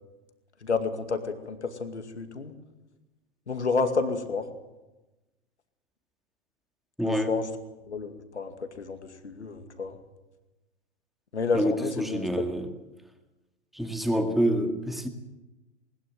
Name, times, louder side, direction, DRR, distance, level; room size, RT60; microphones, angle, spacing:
voice 1, 0.6-2.5 3.5-4.5 7.0-7.5 7.9-10.0 11.3-12.3, left 4 dB, 75° left, 8 dB, 2.3 m, -30 dB
voice 2, 7.0-7.4 11.5-12.7 13.7-15.1, equal, ahead, 6 dB, 2.0 m, -27 dB
20.5 x 20.5 x 7.8 m, 1.1 s
figure-of-eight pair, 100°, 34 cm